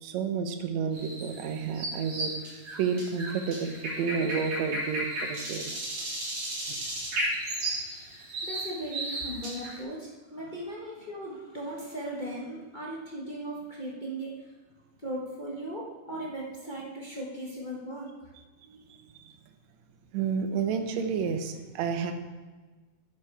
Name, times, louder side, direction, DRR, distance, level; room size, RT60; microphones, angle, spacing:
voice 1, 0.0-2.3 2.8-5.7 6.7-6.8 18.6-19.3 20.1-22.1, right 6 dB, 70° right, 7 dB, 2.0 m, -31 dB
sound 1, 0.9-9.8, right 1 dB, 50° right, 4.1 m, -34 dB
voice 2, 8.4-14.5 15.0-18.1, right 1 dB, 60° left, -5 dB, 0.4 m, -37 dB
10.5 x 8.0 x 4.7 m, 1.3 s
omnidirectional pair, 3.6 m